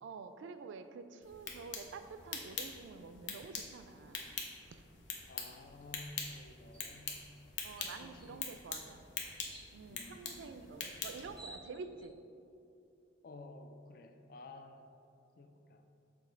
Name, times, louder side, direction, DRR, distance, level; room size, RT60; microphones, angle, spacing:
voice 1, 0.0-4.2 4.7-4.8 7.6-9.0 9.7-12.2, right 4 dB, 80° right, 9 dB, 0.3 m, -48 dB
sound 1, 1.2-11.4, left 5 dB, 80° left, 0.8 m, -45 dB
voice 2, 5.3-7.2 8.0-8.6 9.9-10.6 13.2-14.9 15.4-15.8, left 2 dB, 50° left, 6 dB, 0.4 m, -53 dB
sound 2, 6.7-6.9 7.4-7.5 7.8-8.3 9.4-9.7 10.8-10.9 11.1-12.1, right 1 dB, 5° left, 0.6 m, -54 dB
6.9 x 3.0 x 4.4 m, 2.7 s
head